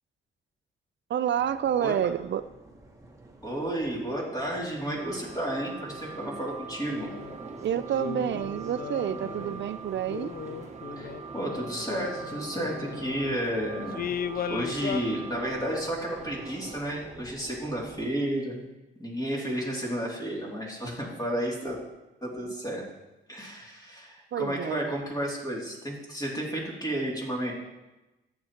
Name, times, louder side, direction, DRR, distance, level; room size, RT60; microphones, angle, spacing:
voice 1, 1.1-2.4 7.6-10.3 24.3-24.9, right 10 dB, 60° right, 13 dB, 0.5 m, -29 dB
sound 1, 1.4-18.1, right 2 dB, 15° right, 1.2 m, -48 dB
voice 2, 3.4-7.1 10.9-14.0 14.5-18.6 19.0-21.8 22.2-22.8 23.3-27.5, right 1 dB, 20° left, -4 dB, 2.7 m, -32 dB
sound 2, 4.9-16.8, right 5 dB, 35° right, 0.8 m, -43 dB
sound 3, 7.1-7.4 7.9-9.6 10.0-13.3 13.9-15.0, left 8 dB, 45° left, 0.4 m, -37 dB
14.5 x 7.6 x 3.0 m, 1.0 s
cardioid pair, 105°, 21 cm